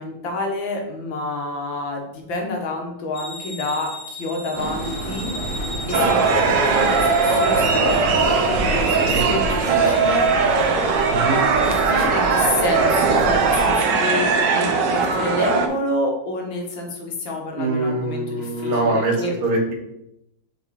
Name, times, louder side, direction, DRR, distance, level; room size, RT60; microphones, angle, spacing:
voice 1, 0.0-5.3 5.9-10.3 11.6-19.3, left 2 dB, 80° left, 2 dB, 2.0 m, -28 dB
sound 1, 3.1-14.4, left 1 dB, 50° left, 1.7 m, -38 dB
sound 2, 4.5-13.7, right 2 dB, 85° right, 1.9 m, -30 dB
sound 3, 5.9-15.7, right 4 dB, 70° right, 1.4 m, -19 dB
voice 2, 17.6-19.7, right 2 dB, 50° right, 0 dB, 1.8 m, -23 dB
5.4 x 5.0 x 4.2 m, 0.83 s
omnidirectional pair, 2.1 m